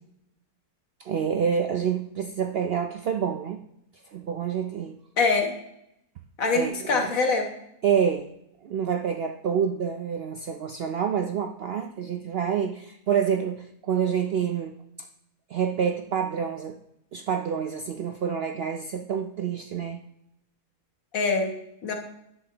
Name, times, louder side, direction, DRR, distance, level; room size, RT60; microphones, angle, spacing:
voice 1, 1.0-3.6 4.1-5.0 6.5-7.1 7.8-8.3 8.6-14.8 15.5-16.8 17.1-20.0, right 7 dB, 80° right, 5 dB, 0.5 m, -27 dB
voice 2, 5.2-5.5 6.4-7.5 21.1-21.5 21.8-21.9, left 4 dB, 65° left, 3 dB, 1.6 m, -24 dB
10.5 x 7.9 x 2.9 m, 0.81 s
omnidirectional pair, 1.6 m